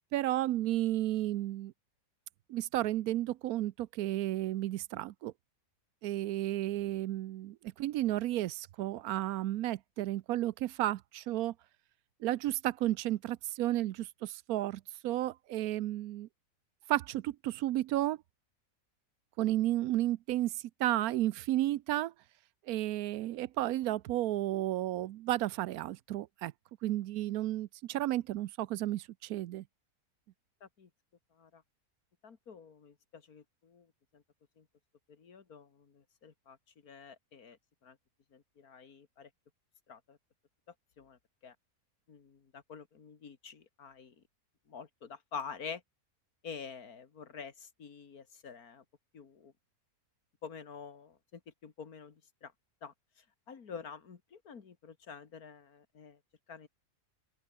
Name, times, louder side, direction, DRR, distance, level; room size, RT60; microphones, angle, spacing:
voice 1, 0.1-1.7 2.5-5.3 6.0-11.5 12.2-16.3 16.9-18.2 19.4-20.5 20.8-22.1 22.7-26.5 26.8-29.6, right 14 dB, 85° right, 1.1 m, -32 dB
voice 2, 32.2-33.9 34.1-34.2 34.6-34.7 35.2-36.6 36.8-37.6 37.8-38.0 38.3-39.3 39.9-40.2 41.0-41.2 41.4-41.5 42.1-44.1 44.7-45.8 46.4-48.8 49.1-49.5 50.4-52.1 52.4-52.5 52.8-52.9 53.5-56.2 56.5-56.7, left 6 dB, 85° left, 2.3 m, -47 dB
open air
omnidirectional pair, 1.5 m